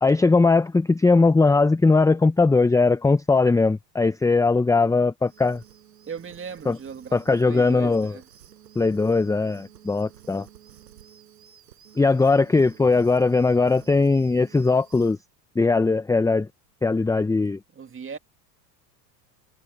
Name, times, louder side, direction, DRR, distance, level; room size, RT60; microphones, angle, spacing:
voice 1, 0.0-5.6 6.7-6.8 7.1-8.2 8.8-10.5 12.0-15.2 15.6-16.5 16.8-17.6, left 3 dB, 5° left, 0.7 m, -20 dB
sound 1, 5.2-15.2, right 10 dB, 90° right, 5.3 m, -51 dB
voice 2, 6.0-8.2 17.4-17.5 17.7-18.2, right 6 dB, 25° right, 2.5 m, -38 dB
hypercardioid pair, 90°, 48 cm